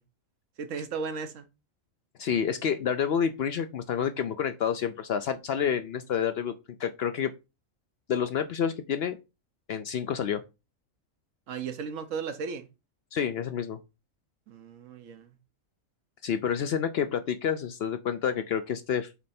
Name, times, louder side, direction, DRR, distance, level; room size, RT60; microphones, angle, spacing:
voice 1, 0.6-1.5 11.5-12.7 14.5-15.4, right 5 dB, 75° right, 1.2 m, -35 dB
voice 2, 2.2-6.5 6.8-7.3 8.1-9.2 9.7-10.4 13.1-13.8 16.2-19.1, left 8 dB, 60° left, 0.7 m, -29 dB
7.0 x 3.3 x 4.2 m
omnidirectional pair, 1.4 m